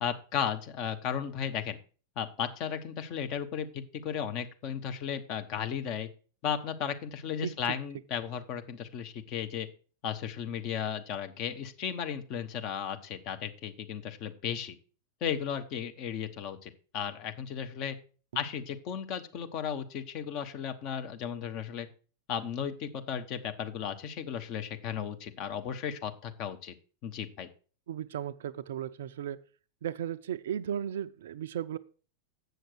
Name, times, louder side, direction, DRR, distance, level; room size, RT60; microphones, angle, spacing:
voice 1, 0.0-1.8 2.2-6.1 6.4-9.7 10.0-14.8 15.2-18.0 18.3-21.9 22.3-26.7 27.0-27.5, left 8 dB, 40° left, 8 dB, 1.0 m, -35 dB
voice 2, 27.9-29.4 29.8-31.8, right 9 dB, 60° right, 11 dB, 0.4 m, -35 dB
8.0 x 6.4 x 6.3 m, 0.39 s
figure-of-eight pair, 90°, 0 cm